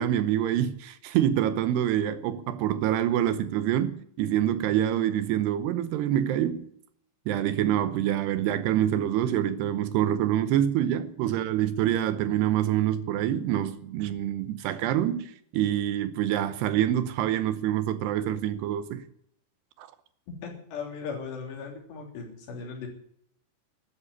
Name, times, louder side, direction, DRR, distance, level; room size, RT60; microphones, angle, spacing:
voice 1, 0.0-6.7 7.3-19.0 19.8-19.9, right 11 dB, 75° right, 2.7 m, -26 dB
voice 2, 20.4-22.9, left 5 dB, 65° left, 5.3 m, -37 dB
13.0 x 9.9 x 9.6 m
omnidirectional pair, 5.4 m